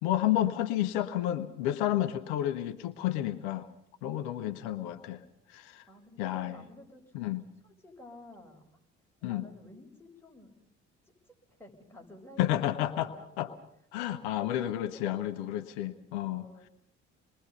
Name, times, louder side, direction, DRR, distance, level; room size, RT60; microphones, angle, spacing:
voice 1, 0.0-3.7 4.0-5.2 5.5-5.8 6.2-6.6 7.1-7.4 9.2-9.4 12.4-13.1 13.4-13.5 13.9-16.5, left 13 dB, 75° left, 9 dB, 1.1 m, -31 dB
voice 2, 5.9-7.2 7.6-8.7 9.2-10.5 11.3-11.4 11.6-13.5 14.0-14.2 16.2-16.7, left 1 dB, 5° left, 0 dB, 7.6 m, -52 dB
27.5 x 22.0 x 5.5 m, 0.75 s
hypercardioid pair, 50°, 34 cm